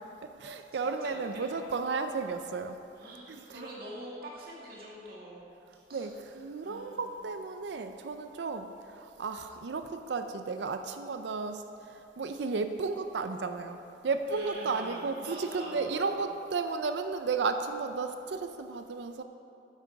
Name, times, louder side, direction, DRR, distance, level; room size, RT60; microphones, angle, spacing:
voice 1, 0.2-2.8 3.3-3.7 5.9-19.2, right 4 dB, 75° right, 8 dB, 0.5 m, -34 dB
voice 2, 0.7-1.6 3.0-5.4 5.9-6.1 6.6-7.2 14.3-16.3, right 1 dB, 55° right, -5 dB, 2.2 m, -45 dB
9.8 x 7.7 x 4.7 m, 2.7 s
head